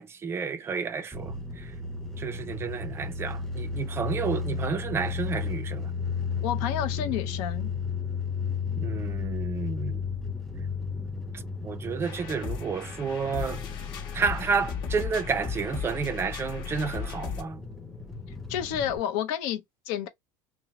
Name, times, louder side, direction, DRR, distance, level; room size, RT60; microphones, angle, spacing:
voice 1, 0.0-1.7 2.2-5.9 8.8-10.1 11.3-13.6 14.1-17.6, right 5 dB, 25° right, 0.4 m, -31 dB
sound 1, 1.1-19.0, left 5 dB, ahead, 0.7 m, -34 dB
voice 2, 6.4-7.7 18.5-20.1, left 10 dB, 70° left, 0.6 m, -30 dB
sound 2, 12.0-17.4, left 7 dB, 50° left, 1.0 m, -36 dB
2.8 x 2.0 x 2.7 m
supercardioid pair, 105°, 10 cm